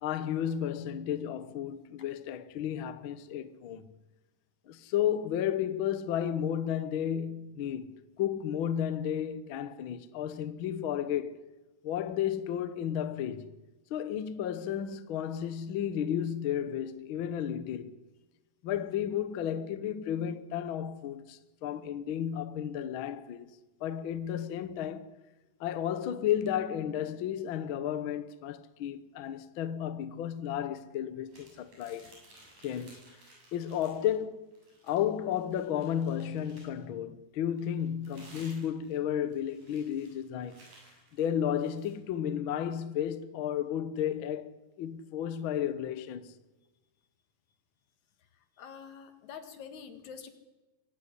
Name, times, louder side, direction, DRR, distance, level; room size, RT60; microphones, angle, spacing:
voice 1, 0.0-3.8 4.7-11.4 11.8-13.5 13.9-17.9 18.6-23.5 23.8-25.1 25.6-32.1 32.6-33.0 33.5-34.5 34.8-40.6 41.1-46.3, left 9 dB, 80° left, 1.1 m, -33 dB
sound 1, 31.3-34.2 34.5-36.9 37.6-42.0, right 1 dB, 80° right, 9.5 m, -57 dB
voice 2, 48.6-50.3, left 7 dB, 60° left, 3.1 m, -46 dB
23.5 x 14.5 x 9.9 m
omnidirectional pair, 3.8 m